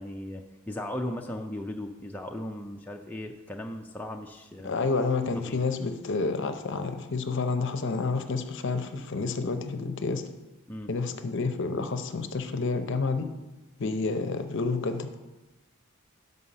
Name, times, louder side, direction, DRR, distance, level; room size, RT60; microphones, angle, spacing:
voice 1, 0.0-4.8 5.5-5.6 10.7-10.9, left 1 dB, 10° left, 1 dB, 0.3 m, -37 dB
voice 2, 4.6-10.3 10.9-13.3 13.8-15.1, left 4 dB, 55° left, 8 dB, 0.6 m, -29 dB
5.6 x 5.4 x 6.6 m, 1.1 s
head